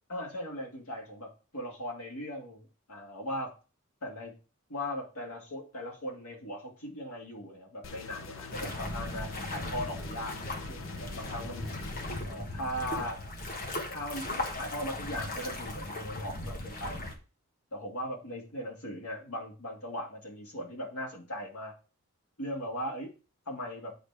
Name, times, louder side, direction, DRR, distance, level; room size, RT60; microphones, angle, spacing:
voice 1, 0.1-3.5 4.0-4.4 4.7-10.4 10.7-11.8 12.3-13.2 13.9-17.1 17.7-21.7 22.4-23.2 23.5-24.0, equal, 85° left, 0 dB, 2.2 m, -38 dB
sound 1, 7.8-12.2, left 5 dB, 65° left, 0.8 m, -45 dB
sound 2, 8.5-17.2, left 1 dB, 40° left, 1.2 m, -38 dB
8.4 x 4.1 x 4.8 m, 0.34 s
head